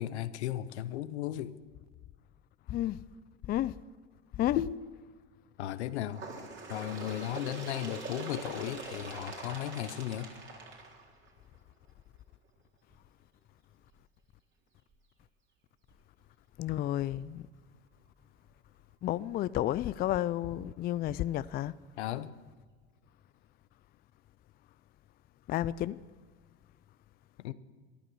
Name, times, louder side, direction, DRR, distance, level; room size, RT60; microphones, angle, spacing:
voice 1, 0.0-1.6 4.5-4.8 5.6-6.2 6.7-10.3 22.0-22.3 27.4-27.5, left 12 dB, 85° left, 0.8 m, -35 dB
voice 2, 2.7-3.0 3.5-3.7 4.4-4.6 16.6-17.5 19.0-21.7 25.5-26.0, left 13 dB, 30° left, 0.4 m, -31 dB
Bird, 6.1-11.6 12.4-12.6 12.9-13.0 13.9-14.0 14.9-15.0 15.9-16.0, right 3 dB, 35° right, 3.7 m, -43 dB
13.5 x 11.5 x 6.2 m
hypercardioid pair, 90°, 33 cm